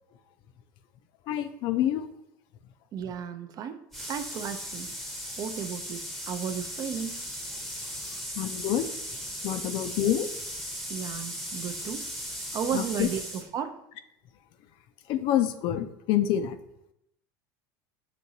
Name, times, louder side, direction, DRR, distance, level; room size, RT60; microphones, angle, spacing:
voice 1, 1.3-2.1 8.4-8.8 9.4-10.3 12.7-13.1 15.1-16.6, left 11 dB, 55° left, 10 dB, 0.4 m, -27 dB
voice 2, 2.9-3.8 4.1-5.0 5.4-6.0 6.3-7.2 9.6-9.7 10.9-12.0 12.5-13.8, right 8 dB, 40° right, 8 dB, 0.4 m, -34 dB
sound 1, 3.9-13.5, equal, ahead, 0.7 m, -37 dB
6.0 x 2.8 x 2.7 m, 0.80 s
supercardioid pair, 115°, 10 cm